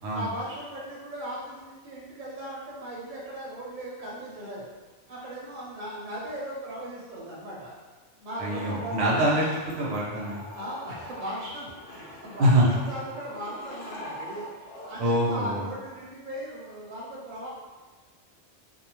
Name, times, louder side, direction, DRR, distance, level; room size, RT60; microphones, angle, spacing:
voice 1, 0.1-4.7 5.1-7.7 8.2-9.2 10.5-17.5, right 1 dB, 50° right, -6 dB, 0.8 m, -38 dB
sound 1, 8.4-14.9, left 1 dB, 90° left, 1.0 m, -42 dB
voice 2, 8.4-9.4 9.8-10.4 12.4-12.7 15.0-15.7, right 1 dB, 90° right, -5 dB, 1.0 m, -24 dB
2.6 x 2.1 x 2.9 m, 1.3 s
omnidirectional pair, 1.2 m